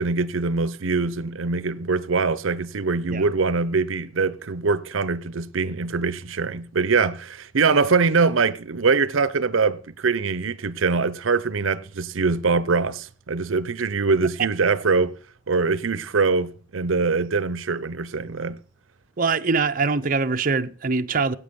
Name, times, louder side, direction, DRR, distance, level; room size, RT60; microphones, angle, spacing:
voice 1, 0.0-15.1 15.5-18.6, right 4 dB, 80° right, 0.7 m, -23 dB
voice 2, 19.2-21.3, right 4 dB, 45° right, 0.6 m, -23 dB
15.5 x 8.6 x 6.9 m
head